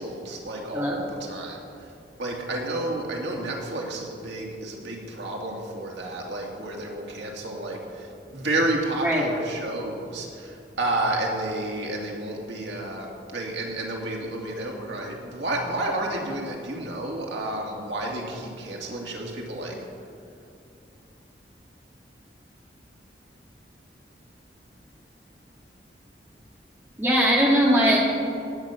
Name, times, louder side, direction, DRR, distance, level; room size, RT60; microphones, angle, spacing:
voice 1, 0.0-1.9 2.2-19.8, right 1 dB, 90° right, -1 dB, 2.5 m, -31 dB
voice 2, 27.0-28.0, equal, 10° right, -4 dB, 2.4 m, -20 dB
18.5 x 8.4 x 5.9 m, 2.6 s
head